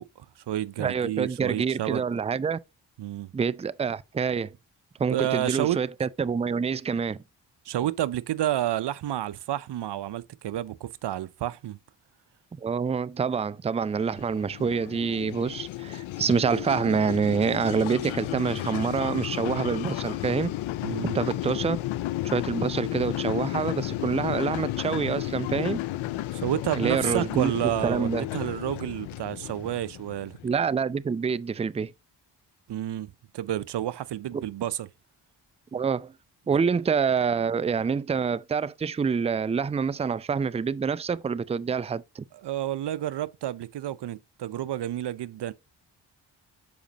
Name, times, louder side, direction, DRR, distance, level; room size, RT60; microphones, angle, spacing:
voice 1, 0.0-2.0 3.0-3.3 5.1-5.8 7.7-11.8 20.8-21.2 26.3-30.4 32.7-34.9 42.4-45.5, right 12 dB, 60° right, 0.6 m, -30 dB
voice 2, 0.8-2.6 3.3-4.5 5.0-7.2 12.5-20.5 21.1-21.8 22.2-25.8 26.7-27.5 27.8-28.3 30.4-31.9 34.3-34.4 35.7-36.1 36.5-42.2, right 6 dB, 15° right, 0.4 m, -27 dB
sound 1, 13.9-30.6, left 15 dB, 80° left, 0.6 m, -33 dB
7.0 x 5.1 x 2.8 m
supercardioid pair, 50°, 47 cm